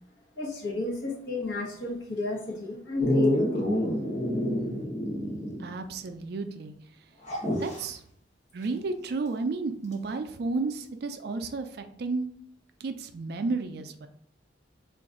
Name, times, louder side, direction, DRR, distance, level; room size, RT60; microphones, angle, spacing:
voice 1, 0.4-3.9, left 2 dB, 70° left, -1 dB, 1.1 m, -32 dB
Dog, 3.0-5.7 6.0-6.1 7.2-7.8 9.9-10.0, left 1 dB, 35° left, 1.0 m, -28 dB
voice 2, 5.6-6.7 7.6-8.0 8.5-12.3 12.8-14.1, right 3 dB, 55° right, 8 dB, 0.4 m, -32 dB
3.9 x 2.5 x 3.6 m, 0.67 s
head